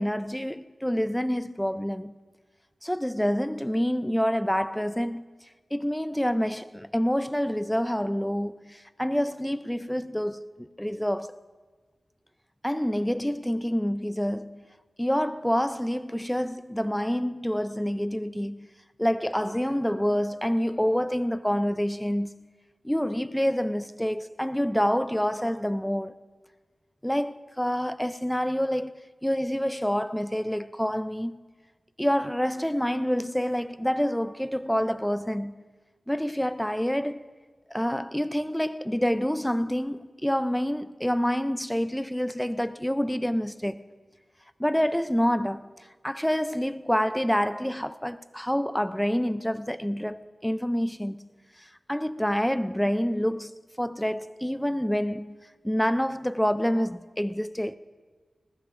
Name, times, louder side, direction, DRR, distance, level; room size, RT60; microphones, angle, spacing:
voice 1, 0.0-2.1 2.8-5.2 5.7-11.4 12.6-14.7 15.0-18.7 19.0-22.5 22.8-26.2 27.0-31.4 32.0-35.7 36.1-37.3 37.7-43.8 44.6-45.7 46.0-51.3 51.6-55.4 55.6-57.8, equal, 5° left, 0.4 m, -27 dB
20.0 x 19.5 x 2.5 m
wide cardioid pair, 105°, 0 cm